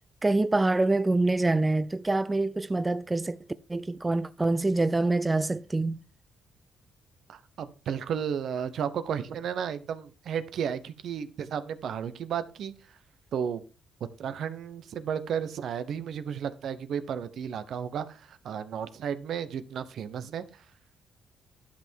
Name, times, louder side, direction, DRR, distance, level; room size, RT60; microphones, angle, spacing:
voice 1, 0.2-3.4 3.7-6.0, right 2 dB, 15° right, 0.4 m, -25 dB
voice 2, 7.3-12.7 13.3-13.6 14.2-20.6, right 8 dB, 65° right, 0.9 m, -33 dB
11.5 x 5.8 x 4.5 m
cardioid pair, 90°, 0 cm